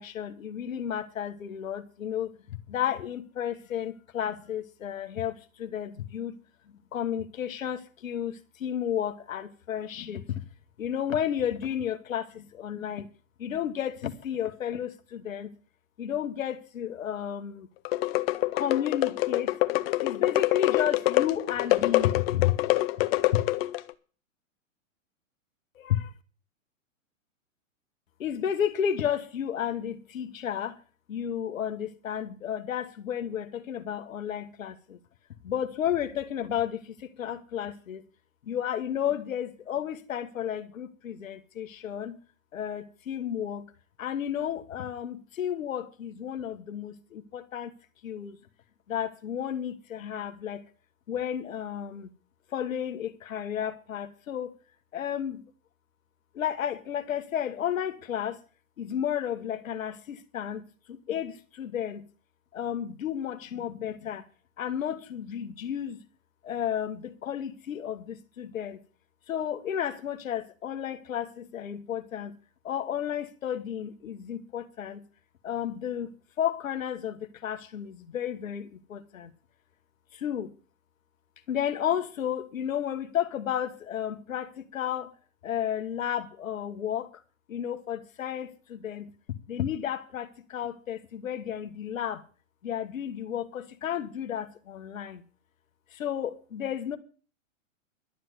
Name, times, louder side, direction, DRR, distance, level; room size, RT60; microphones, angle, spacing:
voice 1, 0.0-2.3 2.7-6.4 6.9-10.4 10.8-13.1 13.4-15.5 16.0-17.7 18.4-19.5 20.0-22.5 23.3-23.4 25.8-26.1 28.2-30.8 31.1-35.0 35.4-38.0 38.5-42.2 42.5-43.6 44.0-47.7 48.0-48.4 48.9-50.6 51.1-52.1 52.5-54.5 54.9-55.4 56.3-58.4 58.8-60.6 61.1-62.0 62.5-64.2 64.6-66.0 66.4-68.8 69.3-72.3 72.6-75.0 75.4-79.3 80.1-80.5 81.5-85.1 85.4-87.1 87.5-89.1 89.5-92.2 92.6-95.2 95.9-97.0, left 9 dB, 75° left, 1.5 m, -32 dB
sound 1, 17.8-23.9, left 18 dB, 45° left, 0.9 m, -26 dB
12.0 x 7.6 x 8.1 m
hypercardioid pair, 120°, 40 cm